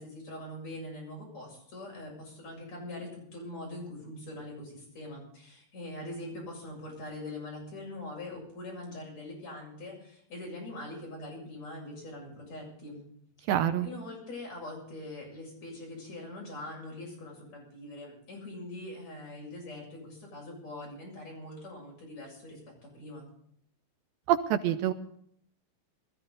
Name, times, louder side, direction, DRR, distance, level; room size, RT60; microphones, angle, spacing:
voice 1, 0.0-13.0 13.8-23.2, left 1 dB, 45° left, -2 dB, 8.5 m, -43 dB
voice 2, 13.5-13.9 24.3-24.9, right 11 dB, 80° right, 8 dB, 2.5 m, -26 dB
21.0 x 14.5 x 4.0 m, 0.66 s
omnidirectional pair, 4.4 m